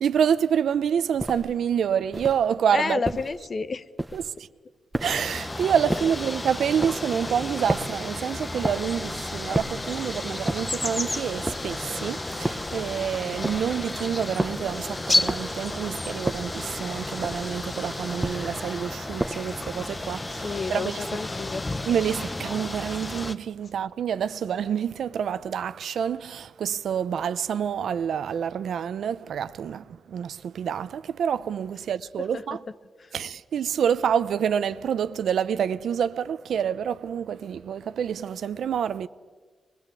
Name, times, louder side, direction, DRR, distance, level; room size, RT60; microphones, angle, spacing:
voice 1, 0.0-3.0 4.1-4.2 5.0-21.0 21.9-32.6 33.1-39.1, right 8 dB, 85° right, 0.8 m, -27 dB
sound 1, 1.2-1.6 2.1-2.5 3.1-3.4 4.0-4.4 4.9-5.4 5.9-6.3 6.8-7.2 7.7-8.1 8.6-9.0 9.5-9.9 10.5-10.9 11.5-11.9 12.5-12.8 13.4-13.8 14.4-14.7 15.3-15.7 16.3-16.7 17.2-17.6 18.2-18.6 19.2-19.6, right 1 dB, 10° right, 1.2 m, -32 dB
voice 2, 2.7-3.9 5.9-6.1 20.3-21.7 32.2-32.6 33.0-33.1, left 4 dB, 40° left, 1.0 m, -31 dB
sound 2, 5.0-23.4, left 2 dB, 20° left, 1.1 m, -32 dB
26.0 x 21.5 x 8.4 m
wide cardioid pair, 115°, 0 cm